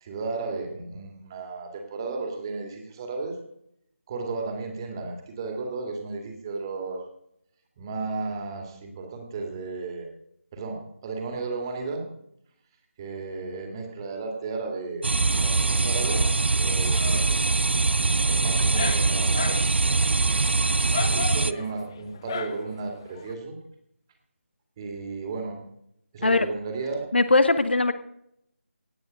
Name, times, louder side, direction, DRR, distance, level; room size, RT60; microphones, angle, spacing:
voice 1, 0.0-3.4 4.1-7.0 7.8-10.1 10.5-12.1 13.0-15.1 15.4-16.3 16.5-18.0 18.3-20.2 21.0-23.6 24.8-25.6 26.1-27.1, right 3 dB, 20° right, 3 dB, 2.2 m, -34 dB
sound 1, 15.0-21.5, right 3 dB, 50° right, 0.5 m, -23 dB
Dog, 15.2-23.3, left 6 dB, 20° left, 0.6 m, -38 dB
voice 2, 27.1-27.9, left 3 dB, 50° left, 12 dB, 1.0 m, -20 dB
17.5 x 9.3 x 5.2 m, 0.74 s
figure-of-eight pair, 160°, 7 cm